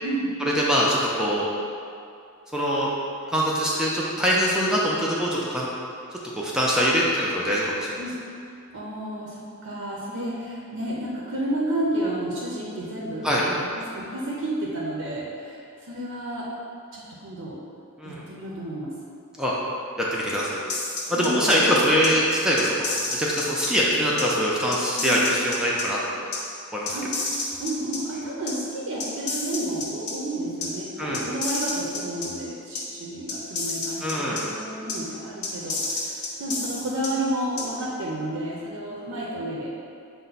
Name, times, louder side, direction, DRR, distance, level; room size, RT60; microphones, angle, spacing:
voice 1, 0.0-0.4 8.0-8.1 8.7-16.5 16.9-17.6 18.0-19.0 21.1-21.6 25.0-25.2 26.9-27.2 27.6-39.7, right 1 dB, 60° right, -4 dB, 0.5 m, -31 dB
voice 2, 0.5-1.5 2.5-2.9 3.3-5.7 6.3-7.6 7.9-8.0 13.2-13.4 18.0-18.3 19.4-19.5 20.0-20.6 21.1-26.3 26.7-27.0 31.0-31.2 34.0-34.4, equal, 5° right, -6 dB, 0.4 m, -23 dB
sound 1, 20.7-21.6 22.0-22.1 22.6-23.7 24.2-24.3 24.7-25.8 26.3-26.4 26.9-28.0 28.5-28.6 29.0-30.1 30.6-30.7 31.1-32.3 32.8-32.9 33.3-34.4 34.9-35.0 35.4-37.1 37.6-37.7, left 3 dB, 80° left, 0.7 m, -30 dB
5.4 x 2.1 x 3.9 m, 2.5 s
head